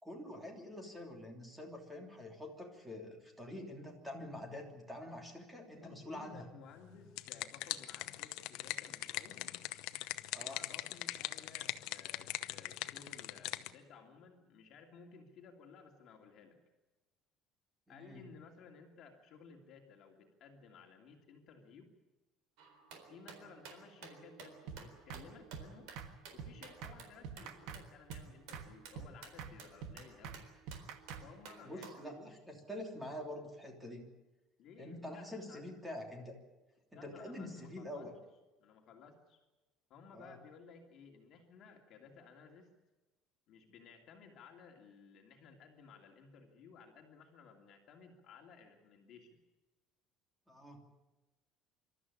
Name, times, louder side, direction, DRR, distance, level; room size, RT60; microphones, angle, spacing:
voice 1, 0.0-6.5 10.3-10.6 17.9-18.3 31.6-34.1 34.8-36.4 36.9-38.1 40.1-40.4 50.5-50.9, left 1 dB, 5° right, 2 dB, 3.1 m, -46 dB
voice 2, 5.8-9.4 10.5-16.6 17.9-21.9 22.9-25.9 26.3-30.4 31.2-32.4 34.6-35.6 36.9-38.1 38.6-39.4 39.9-42.7 43.5-49.4, left 5 dB, 40° left, 2 dB, 2.9 m, -57 dB
sound 1, 6.8-13.7, left 16 dB, 65° left, 0.9 m, -41 dB
sound 2, 22.6-32.1, right 6 dB, 80° right, 4.0 m, -55 dB
sound 3, 24.7-24.8 25.1-25.2 25.5-25.7 25.9-26.1 26.4-26.5 26.8-27.0 27.2-27.8 28.1-28.2 28.5-28.7 28.9-29.1 29.4-29.5 29.8-29.9 30.2-30.4 30.7-31.2, right 7 dB, 65° right, 1.8 m, -45 dB
26.0 x 13.0 x 9.8 m, 1.1 s
cardioid pair, 175°, 0 cm